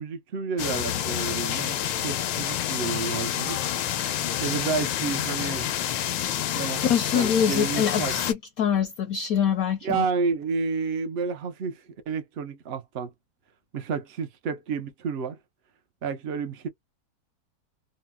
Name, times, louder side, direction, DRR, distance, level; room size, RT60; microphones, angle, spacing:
voice 1, 0.0-3.6 4.4-5.9 6.5-8.1 9.8-11.8 12.1-13.1 13.7-15.4 16.0-16.7, right 5 dB, 75° right, 0.5 m, -30 dB
sound 1, 0.6-8.3, left 11 dB, 90° left, 1.3 m, -28 dB
voice 2, 6.7-10.1, left 8 dB, 70° left, 0.8 m, -24 dB
4.0 x 2.0 x 2.2 m
omnidirectional pair, 2.0 m